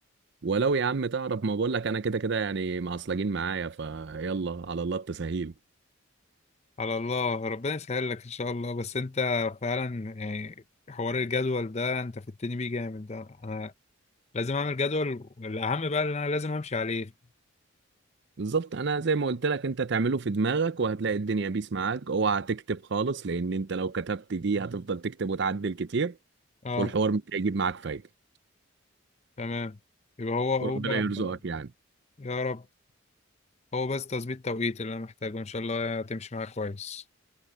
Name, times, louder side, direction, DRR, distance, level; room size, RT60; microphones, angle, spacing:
voice 1, 0.4-5.5 18.4-26.2 26.8-28.0 30.6-31.7, right 4 dB, 55° right, 0.6 m, -29 dB
voice 2, 6.8-10.5 10.9-13.7 14.3-17.1 26.6-26.9 29.4-29.8 30.2-31.3 32.2-32.6 33.7-37.0, left 3 dB, 30° left, 0.6 m, -31 dB
head